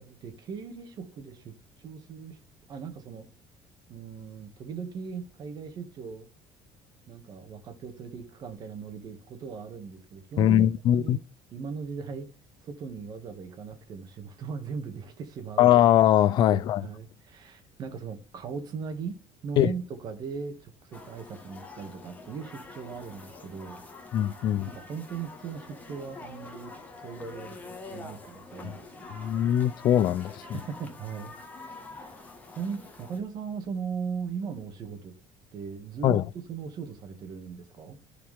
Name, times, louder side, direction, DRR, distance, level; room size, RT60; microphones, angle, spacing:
voice 1, 0.0-2.4 2.7-3.3 3.9-6.3 7.1-10.7 10.9-11.2 11.5-12.3 12.6-15.7 16.5-19.2 19.4-23.8 24.7-29.1 30.5-32.2 32.5-35.1 35.5-36.2 36.5-38.0, right 6 dB, 40° right, 2.0 m, -38 dB
voice 2, 10.4-11.2 15.6-16.8 19.6-19.7 24.1-24.7 29.1-30.6 36.0-36.2, left 11 dB, 45° left, 0.5 m, -21 dB
sound 1, 20.9-33.2, left 3 dB, 15° left, 1.6 m, -46 dB
14.5 x 5.0 x 3.5 m
cardioid pair, 170°, 10 cm